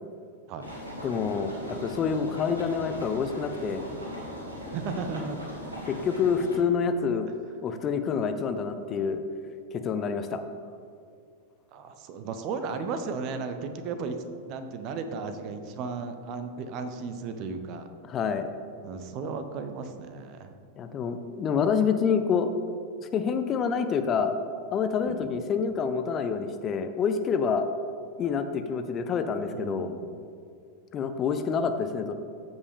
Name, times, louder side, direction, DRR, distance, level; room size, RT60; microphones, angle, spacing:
sound 1, 0.6-6.6, equal, 80° right, 2.3 m, -39 dB
voice 1, 1.0-1.5 1.8-3.9 5.9-7.3 7.6-9.2 9.7-10.4 18.0-18.5 20.8-22.5 23.1-24.3 24.7-27.7 28.2-29.9 30.9-32.1, left 6 dB, 30° left, 8 dB, 0.5 m, -27 dB
voice 2, 4.7-5.4 11.7-14.2 14.4-17.9 18.8-20.5 25.0-25.4 29.5-30.0, right 5 dB, 40° right, 8 dB, 0.8 m, -35 dB
14.0 x 5.3 x 3.6 m, 2.4 s
figure-of-eight pair, 90°, 0 cm